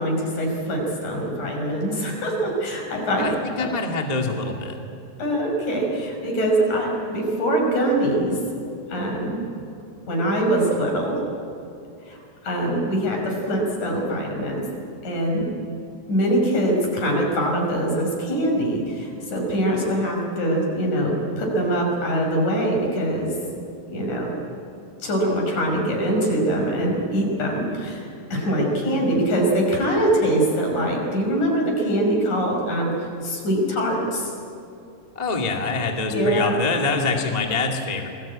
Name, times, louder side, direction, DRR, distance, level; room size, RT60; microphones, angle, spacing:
voice 1, 0.0-3.3 3.6-3.7 5.2-8.4 8.9-9.4 10.1-11.2 12.1-12.2 12.4-14.7 15.0-15.5 16.1-23.4 23.9-24.3 25.0-34.3 36.1-36.6, right 1 dB, 55° left, 1 dB, 6.9 m, -23 dB
voice 2, 3.2-4.8 35.1-38.1, left 3 dB, 15° left, 1 dB, 1.4 m, -25 dB
27.5 x 21.5 x 8.7 m, 2.5 s
omnidirectional pair, 4.1 m